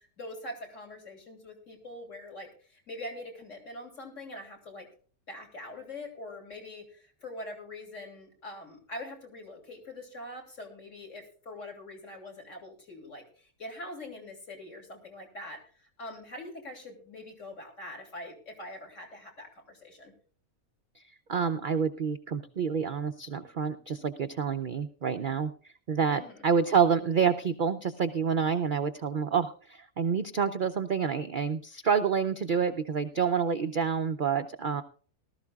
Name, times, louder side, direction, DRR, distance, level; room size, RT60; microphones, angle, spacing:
voice 1, 0.0-4.9 5.3-20.1 26.2-26.4, left 1 dB, 55° left, 1 dB, 3.3 m, -43 dB
voice 2, 21.3-25.5 25.9-34.8, right 6 dB, 55° right, 8 dB, 0.5 m, -28 dB
19.0 x 13.0 x 2.4 m, 0.42 s
omnidirectional pair, 1.5 m